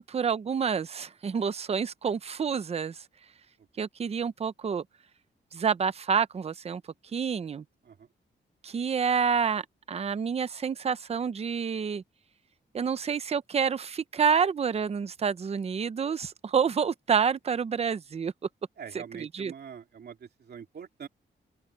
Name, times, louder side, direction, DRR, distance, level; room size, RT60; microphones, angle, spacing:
voice 1, 0.0-3.0 3.8-4.8 5.5-6.8 7.1-7.6 8.6-9.6 9.9-12.0 12.7-18.3 19.2-19.5, right 6 dB, 30° right, 0.6 m, -28 dB
voice 2, 18.8-21.1, right 7 dB, 55° right, 2.8 m, -44 dB
open air
wide cardioid pair, 170°, 20 cm